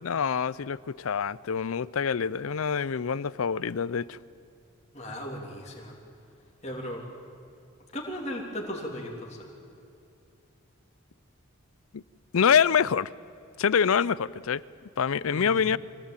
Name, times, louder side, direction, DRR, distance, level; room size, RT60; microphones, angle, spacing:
voice 1, 0.0-4.2 11.9-12.0 12.3-13.1 13.6-14.6 15.0-15.8, left 7 dB, 75° left, 21 dB, 0.5 m, -25 dB
voice 2, 4.9-5.9 6.6-7.0 7.9-9.4 15.3-15.6, equal, 30° left, -1 dB, 3.2 m, -36 dB
24.0 x 17.0 x 8.9 m, 2.6 s
head